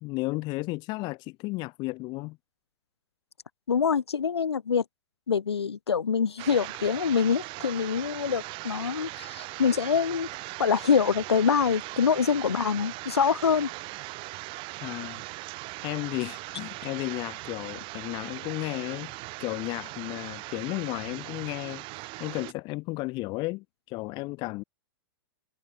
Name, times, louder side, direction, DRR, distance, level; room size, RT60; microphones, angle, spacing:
voice 1, 0.0-2.4 14.8-15.2 15.8-19.1 19.4-24.6, left 23 dB, 35° left, 0.5 m, -33 dB
voice 2, 3.7-4.8 5.3-10.3 10.6-13.7, left 6 dB, 85° left, 1.2 m, -25 dB
sound 1, 6.4-22.5, right 24 dB, 40° right, 2.3 m, -39 dB
hypercardioid pair, 110°, 13 cm